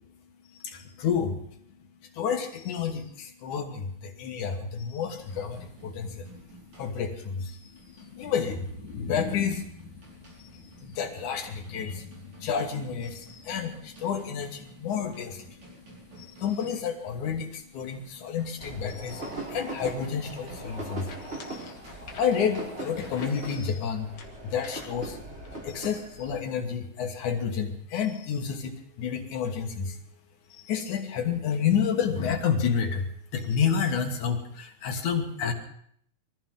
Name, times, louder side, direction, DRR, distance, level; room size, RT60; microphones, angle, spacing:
voice 1, 0.5-1.5 2.0-21.8 22.2-24.1 24.4-25.2 25.6-30.0 30.5-33.1 33.3-35.5, left 7 dB, 80° left, 4 dB, 2.9 m, -30 dB
sound 1, 5.2-23.6, right 1 dB, 65° right, 6.0 m, -52 dB
sound 2, 18.6-26.3, right 2 dB, 20° right, 3.4 m, -40 dB
sound 3, 20.5-25.8, left 4 dB, 50° left, 2.3 m, -50 dB
22.5 x 14.5 x 3.8 m, 0.65 s
omnidirectional pair, 3.4 m